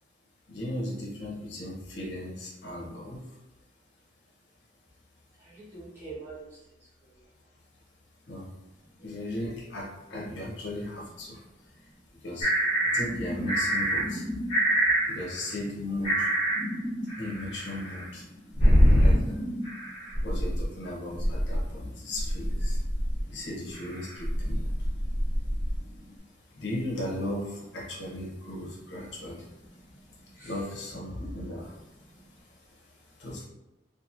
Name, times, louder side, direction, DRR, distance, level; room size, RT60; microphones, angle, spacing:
voice 1, 0.5-3.2 8.3-8.5 9.0-11.4 12.2-12.5 12.9-14.2 15.1-16.3 17.2-18.2 18.6-19.4 20.2-22.8 23.3-24.7 26.6-29.4 30.4-31.7 33.2-33.5, left 1 dB, 70° left, -3 dB, 0.7 m, -36 dB
voice 2, 5.4-6.5 9.0-9.2 12.8-12.9 14.9-15.1 19.9-20.0 25.2-25.3 29.7-29.8 30.3-30.6, right 3 dB, 10° right, -10 dB, 1.0 m, -45 dB
sound 1, 12.4-15.5 15.8-15.9 16.0-21.7 22.1-23.4 23.7-25.8, equal, 35° left, 0.8 m, -26 dB
2.8 x 2.5 x 2.5 m, 1.0 s
head